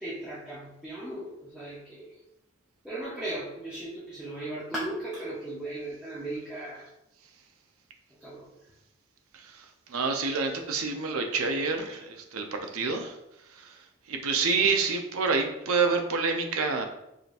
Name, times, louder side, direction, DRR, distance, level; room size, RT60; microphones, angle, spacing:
voice 1, 0.0-2.1 2.8-6.9 8.2-8.5, right 1 dB, 5° right, -8 dB, 0.6 m, -37 dB
voice 2, 9.3-13.2 13.4-16.8, right 4 dB, 85° right, 4 dB, 0.5 m, -28 dB
4.9 x 2.8 x 2.5 m, 0.86 s
head